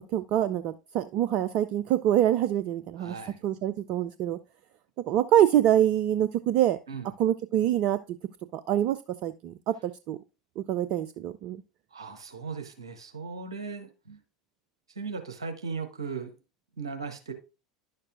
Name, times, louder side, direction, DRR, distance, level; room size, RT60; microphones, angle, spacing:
voice 1, 0.0-3.1 3.4-4.4 5.1-6.8 7.2-8.0 8.5-10.2 10.6-11.6, right 11 dB, 45° right, 0.4 m, -25 dB
voice 2, 3.0-3.4 6.9-7.1 11.9-14.2 14.9-16.3 16.8-17.3, right 4 dB, 75° right, 1.0 m, -37 dB
10.5 x 6.6 x 2.5 m
figure-of-eight pair, 75°, 3 cm